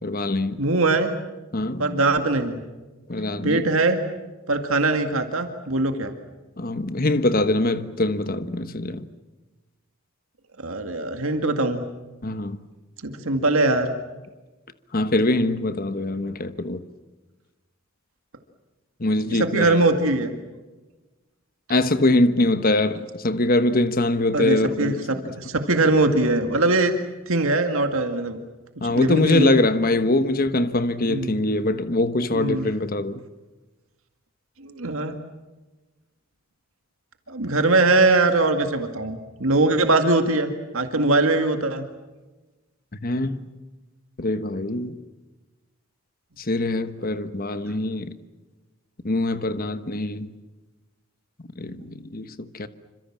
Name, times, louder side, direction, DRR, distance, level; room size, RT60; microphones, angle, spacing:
voice 1, 0.0-0.6 1.5-2.0 3.1-3.6 6.6-9.1 12.2-12.6 14.9-16.8 19.0-19.8 21.7-25.3 28.8-33.2 43.0-43.5 44.2-44.9 46.4-48.1 49.0-50.3 51.6-52.7, left 2 dB, 40° left, 1.2 m, -23 dB
voice 2, 0.6-1.1 1.8-2.6 3.4-4.0 4.5-6.1 10.6-11.8 13.0-13.9 19.3-20.3 24.3-24.9 25.4-27.0 27.3-28.4 28.9-29.6 31.1-31.4 32.3-32.7 34.6-35.2 37.3-41.8, right 2 dB, 65° right, 2.1 m, -21 dB
27.5 x 26.0 x 7.4 m
head